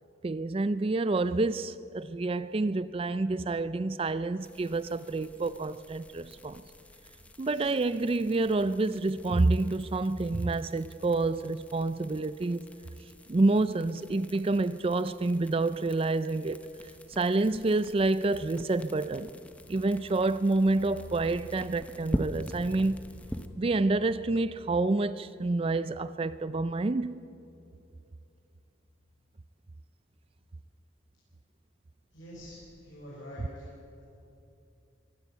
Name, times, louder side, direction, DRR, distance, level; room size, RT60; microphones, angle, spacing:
voice 1, 0.2-6.6 7.4-12.7 13.3-16.6 17.2-19.3 19.7-23.0 23.6-27.2, right 2 dB, 30° right, 0.4 m, -28 dB
sound 1, 4.4-23.5, equal, 5° left, 0.9 m, -44 dB
sound 2, 18.9-28.4 28.6-28.7 29.0-29.5, left 2 dB, 55° left, 3.1 m, -54 dB
voice 2, 32.1-33.7, left 1 dB, 80° left, 6.5 m, -46 dB
23.0 x 14.0 x 8.1 m
head